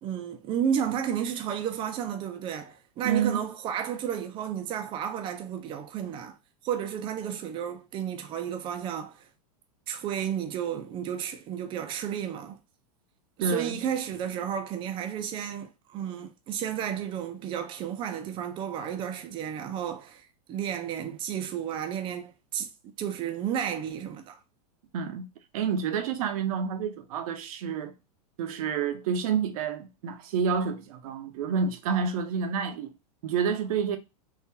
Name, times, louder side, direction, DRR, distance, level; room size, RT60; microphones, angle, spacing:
voice 1, 0.0-6.4 6.6-9.3 9.9-12.6 13.4-22.7 23.0-24.4, right 9 dB, 25° right, 0.5 m, -32 dB
voice 2, 3.0-3.4 13.4-13.8 24.9-25.3 25.5-27.9 28.4-32.9 33.2-34.0, right 6 dB, 65° right, 0.8 m, -29 dB
3.8 x 2.4 x 2.8 m
supercardioid pair, 145°, 20 cm